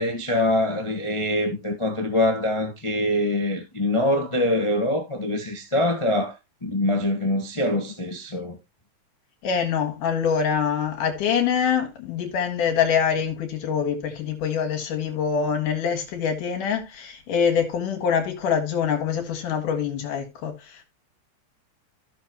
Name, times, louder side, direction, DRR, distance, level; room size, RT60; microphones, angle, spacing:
voice 1, 0.0-6.4 6.6-8.6, left 1 dB, 20° left, 0.9 m, -24 dB
voice 2, 9.4-20.8, left 7 dB, 80° left, 3.4 m, -25 dB
15.0 x 6.7 x 2.9 m
omnidirectional pair, 3.6 m